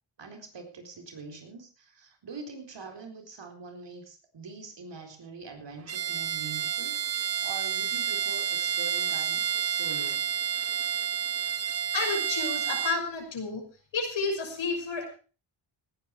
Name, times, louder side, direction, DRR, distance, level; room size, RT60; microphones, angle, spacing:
voice 1, 0.2-7.0 7.4-10.3, right 4 dB, 60° right, 5 dB, 4.2 m, -44 dB
Bowed string instrument, 5.9-13.0, right 8 dB, 30° right, 0.5 m, -30 dB
voice 2, 11.9-13.6 13.9-15.1, left 4 dB, 65° left, 3 dB, 6.1 m, -31 dB
18.0 x 9.9 x 4.7 m, 0.37 s
cardioid pair, 70°, 49 cm